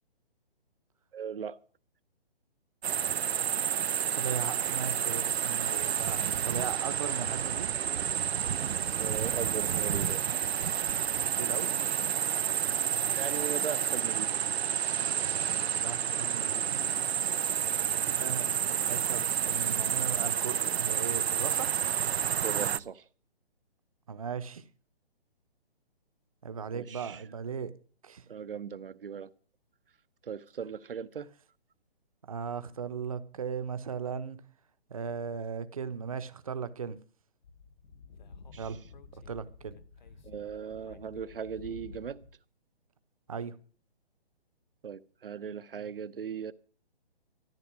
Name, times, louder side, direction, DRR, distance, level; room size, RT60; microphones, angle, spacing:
voice 1, 1.1-1.6 9.0-10.2 13.1-14.5 22.4-23.1 26.7-27.2 28.3-29.3 30.2-31.3 38.5-38.7 40.2-42.2 44.8-46.5, right 7 dB, 60° right, 1.0 m, -38 dB
sound 1, 2.8-22.8, right 9 dB, 85° right, 0.7 m, -30 dB
voice 2, 3.2-7.7 11.3-11.7 15.7-17.1 18.2-21.7 24.1-24.6 26.4-27.7 28.0-28.2 32.2-34.4 34.9-37.0 38.6-38.8 39.1-39.8 43.3-43.6, right 6 dB, 35° right, 0.9 m, -38 dB
Speech / Wind, 37.4-42.3, left 5 dB, 45° left, 1.1 m, -51 dB
13.5 x 11.5 x 6.1 m
hypercardioid pair, 175°, 31 cm